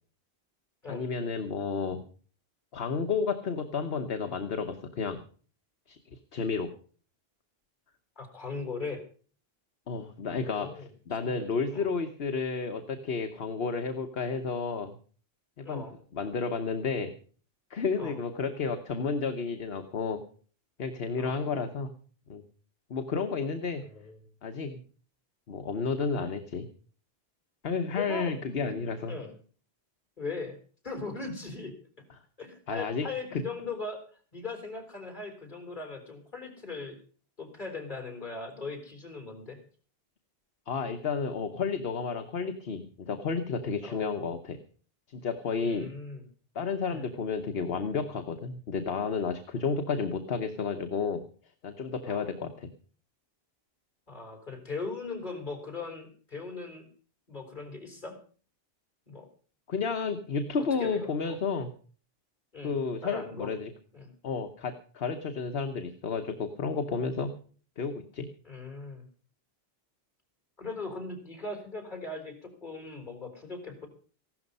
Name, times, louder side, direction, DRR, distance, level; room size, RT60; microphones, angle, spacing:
voice 1, 0.9-2.0 2.7-5.2 5.9-6.7 9.9-15.0 15.6-15.8 16.1-17.1 17.7-20.2 20.8-21.9 22.3-22.4 22.9-23.8 24.4-24.8 25.5-26.7 27.6-29.1 32.7-33.4 40.7-44.6 45.1-45.9 46.5-51.2 51.6-52.7 59.7-61.7 62.6-63.7 64.2-67.3 67.8-68.3, left 5 dB, 70° left, 7 dB, 1.3 m, -31 dB
voice 2, 8.2-9.0 10.2-10.9 11.2-11.4 11.7-11.9 15.6-15.9 18.0-18.2 21.2-21.3 23.8-24.2 28.0-28.8 29.1-29.3 30.2-30.6 30.8-31.7 32.4-34.0 34.3-37.0 37.4-39.6 43.8-44.0 45.6-46.3 46.9-47.1 52.1-52.2 54.1-56.9 57.3-58.1 59.1-59.3 60.8-61.4 62.5-62.8 63.0-63.5 63.9-64.1 68.4-69.1 70.6-73.9, left 3 dB, 50° left, 4 dB, 4.4 m, -39 dB
15.5 x 12.5 x 5.4 m, 0.42 s
omnidirectional pair, 1.0 m